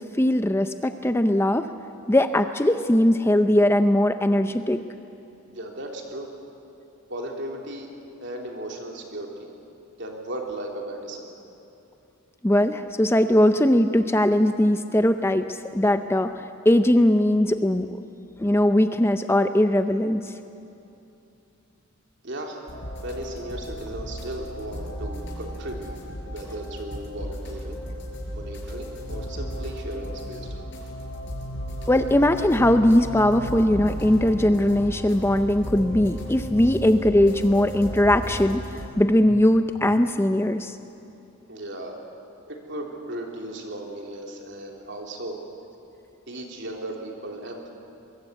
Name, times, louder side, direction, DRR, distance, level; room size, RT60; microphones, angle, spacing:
voice 1, 0.2-1.7 2.1-4.8 12.4-17.9 18.4-20.3 31.9-38.6 39.0-40.8, left 1 dB, 10° left, 9 dB, 0.5 m, -20 dB
voice 2, 5.5-6.3 7.1-7.9 8.2-9.5 10.0-11.3 22.2-22.6 23.0-26.0 26.2-27.8 28.3-30.6 36.6-36.7 41.5-42.0 42.5-45.4 46.3-47.7, right 1 dB, 55° right, 1 dB, 3.4 m, -36 dB
sound 1, 22.7-38.9, equal, 55° left, 5.3 m, -35 dB
23.5 x 22.0 x 8.1 m, 2.8 s
head